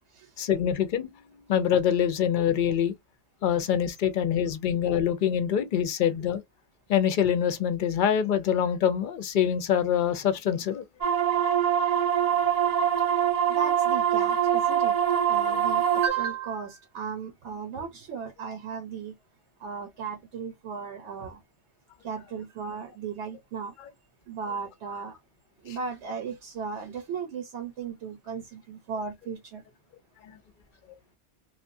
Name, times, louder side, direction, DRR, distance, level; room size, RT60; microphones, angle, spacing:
voice 1, 0.4-1.1 1.5-2.9 3.4-6.4 6.9-10.8 25.7-25.8, left 9 dB, 55° left, 0.6 m, -25 dB
sound 1, 11.0-16.1, right 9 dB, 50° right, 0.5 m, -24 dB
voice 2, 13.5-15.0 15.3-19.1 19.6-21.4 22.0-23.8 24.3-25.2 25.6-29.6, right 6 dB, 80° right, 1.0 m, -36 dB
3.1 x 2.3 x 2.5 m
omnidirectional pair, 1.1 m